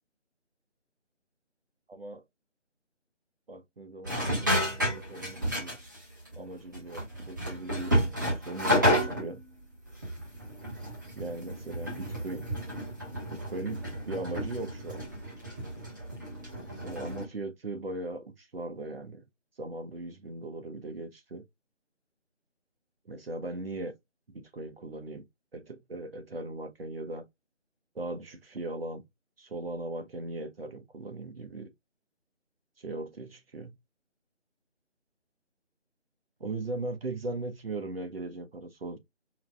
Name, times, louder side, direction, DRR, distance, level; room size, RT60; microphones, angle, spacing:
voice 1, 1.9-2.2 3.5-5.8 6.4-7.9 8.5-9.4 11.2-12.5 13.3-15.0 16.8-19.3 19.6-21.4 23.0-23.9 24.3-25.2 25.5-27.2 27.9-29.0 29.4-31.7 32.8-33.7 36.4-39.0, right 2 dB, 55° right, 1.0 m, -38 dB
sound 1, 4.0-6.0 6.3-6.4 6.7-9.4 9.9-17.2, equal, 15° right, 1.0 m, -31 dB
4.7 x 2.2 x 3.4 m
figure-of-eight pair, 165°, 36 cm